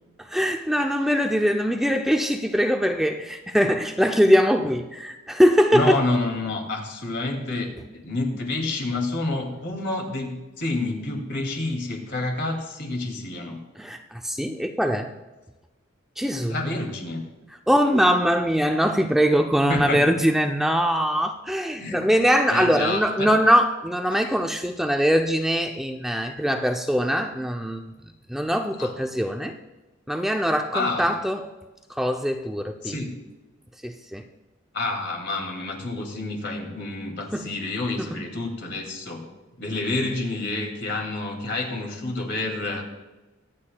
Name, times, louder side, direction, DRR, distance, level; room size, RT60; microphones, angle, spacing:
voice 1, 0.3-6.0 13.8-15.1 16.2-16.6 17.7-27.8 28.3-29.5 30.1-31.5 32.0-33.0 33.8-34.2 37.3-37.5 38.0-38.2, equal, ahead, 3 dB, 0.4 m, -22 dB
voice 2, 5.7-7.7 7.9-13.6 16.5-17.2 19.7-20.0 21.8-22.1 22.5-23.4 28.8-28.9 30.7-31.2 32.8-33.2 34.7-39.2 39.6-42.8, left 2 dB, 60° left, 2 dB, 2.4 m, -28 dB
23.5 x 8.6 x 2.3 m, 1.1 s
head